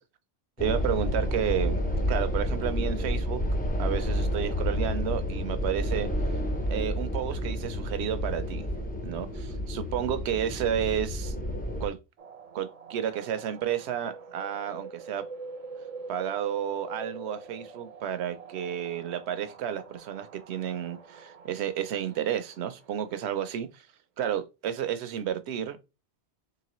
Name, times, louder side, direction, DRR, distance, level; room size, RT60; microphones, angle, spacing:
sound 1, 0.6-11.9, equal, 15° left, 0.3 m, -30 dB
voice 1, 0.6-1.8 2.1-3.4 3.8-6.1 6.7-8.7 9.0-11.3 11.8-12.0 12.5-15.3 16.1-23.9 24.2-25.8, right 9 dB, 75° right, 0.8 m, -31 dB
sound 2, 12.2-23.4, right 4 dB, 50° right, 0.5 m, -45 dB
3.9 x 2.9 x 2.9 m
omnidirectional pair, 1.2 m